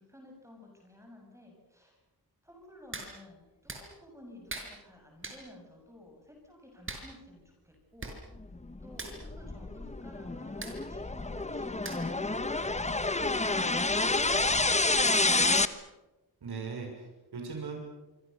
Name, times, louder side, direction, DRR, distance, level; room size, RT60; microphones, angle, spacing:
voice 1, 0.0-2.0 2.4-8.2 8.8-15.8, left 1 dB, 5° right, 1 dB, 7.5 m, -53 dB
Hands, 2.9-3.1 3.7-3.8 4.5-4.7 5.2-5.4 6.9-7.1 7.7-7.8 8.0-8.2 8.4-8.6 8.9-9.2 10.6-10.8 11.8-12.2 12.6-12.7, right 2 dB, 35° right, 6.1 m, -40 dB
sound 1, 8.7-15.7, left 2 dB, 20° left, 1.3 m, -28 dB
voice 2, 16.4-17.8, right 5 dB, 90° right, 2 dB, 6.6 m, -39 dB
26.5 x 25.0 x 6.9 m, 1.1 s
wide cardioid pair, 100°, 38 cm